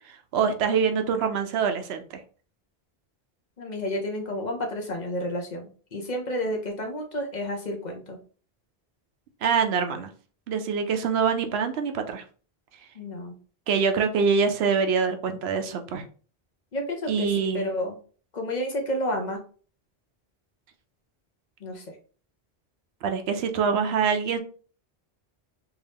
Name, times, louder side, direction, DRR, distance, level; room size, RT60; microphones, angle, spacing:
voice 1, 0.1-2.2 9.4-10.1 10.5-12.2 13.7-16.0 17.1-17.7 23.0-24.4, right 6 dB, 85° right, 7 dB, 0.9 m, -25 dB
voice 2, 3.6-5.6 5.9-8.2 12.9-13.4 16.7-18.0 18.3-19.4 21.6-21.8, left 1 dB, 45° left, 2 dB, 0.9 m, -30 dB
3.5 x 2.6 x 3.4 m, 0.40 s
omnidirectional pair, 1.0 m